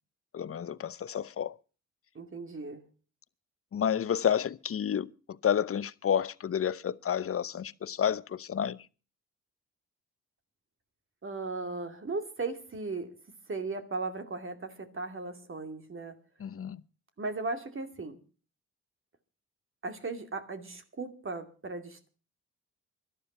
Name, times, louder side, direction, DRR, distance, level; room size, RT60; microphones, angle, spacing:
voice 1, 0.3-1.5 3.7-8.8 16.4-16.8, left 8 dB, 45° left, 0.8 m, -30 dB
voice 2, 2.1-2.8 11.2-13.2 13.5-16.2 17.2-18.2 19.8-22.1, right 3 dB, 40° right, 2.6 m, -37 dB
17.0 x 12.0 x 5.5 m
supercardioid pair, 60°, 31 cm